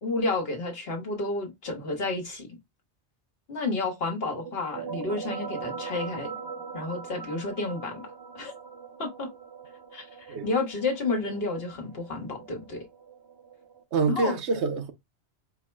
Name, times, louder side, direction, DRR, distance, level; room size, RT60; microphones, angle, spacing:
voice 1, 0.0-2.5 3.5-6.3 6.7-8.5 9.0-9.3 9.9-12.9 14.1-14.4, left 3 dB, 65° left, 1.3 m, -31 dB
sound 1, 4.4-13.8, right 5 dB, 40° right, 0.3 m, -41 dB
voice 2, 13.9-14.9, right 4 dB, 80° right, 1.0 m, -26 dB
4.6 x 2.0 x 4.3 m
omnidirectional pair, 1.1 m